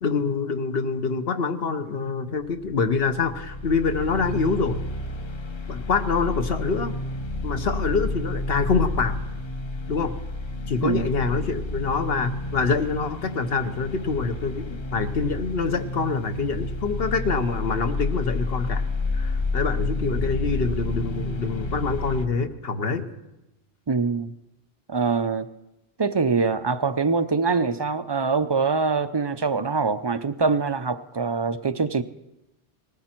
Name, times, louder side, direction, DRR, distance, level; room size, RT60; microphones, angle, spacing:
voice 1, 0.0-4.8 5.7-6.9 7.4-9.2 9.9-10.1 10.7-18.8 19.1-23.1, left 4 dB, 70° left, 8 dB, 1.2 m, -25 dB
Dark Heavy Drone, 2.4-22.3, left 2 dB, 30° left, 0.6 m, -30 dB
voice 2, 23.9-24.3 24.9-25.5 26.0-32.0, right 4 dB, 40° right, 12 dB, 0.4 m, -24 dB
19.5 x 14.5 x 4.4 m, 0.93 s
omnidirectional pair, 1.1 m